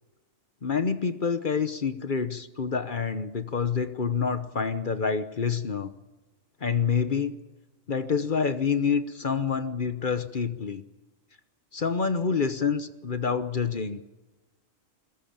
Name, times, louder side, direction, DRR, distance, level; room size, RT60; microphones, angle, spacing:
voice 1, 0.6-5.9 6.6-7.4 7.9-10.8 11.7-14.0, left 6 dB, 40° left, 11 dB, 1.0 m, -27 dB
22.0 x 20.0 x 8.8 m, 1.2 s
omnidirectional pair, 1.4 m